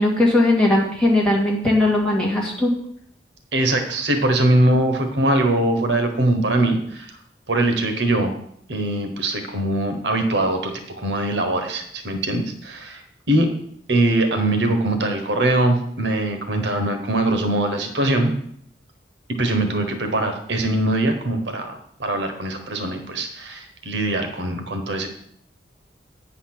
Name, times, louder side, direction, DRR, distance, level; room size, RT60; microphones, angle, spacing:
voice 1, 0.0-2.7, left 1 dB, 5° left, -4 dB, 2.0 m, -18 dB
voice 2, 3.5-7.2 7.5-8.3 8.7-13.5 13.9-18.3 19.4-25.1, right 1 dB, 75° right, 5 dB, 1.1 m, -22 dB
8.6 x 4.2 x 5.9 m, 0.67 s
head